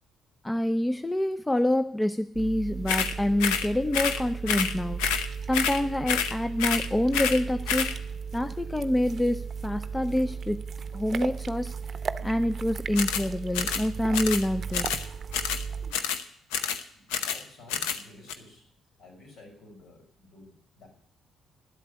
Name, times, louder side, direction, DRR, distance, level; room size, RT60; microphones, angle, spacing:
voice 1, 0.4-5.0 5.5-8.0 8.3-10.6 10.9-11.7 12.2-14.9, left 1 dB, 15° left, 10 dB, 0.6 m, -27 dB
sound 1, 2.3-15.9, right 6 dB, 55° right, 0.7 m, -36 dB
sound 2, 2.9-3.1 3.4-3.7 3.9-4.2 4.5-4.7 5.0-5.3 5.5-5.8 6.1-6.3 6.6-6.9 7.1-7.4 7.7-7.9 12.9-13.3 13.5-13.9 14.1-14.4 14.7-15.0 15.3-15.6 15.9-16.2 16.5-16.8 17.1-17.4 17.7-18.0 18.3-18.4, left 8 dB, 90° left, 0.8 m, -28 dB
voice 2, 17.1-18.6 19.0-20.9, left 2 dB, 70° left, 0 dB, 5.8 m, -51 dB
11.0 x 8.3 x 8.2 m, 0.65 s
supercardioid pair, 55°, 0 cm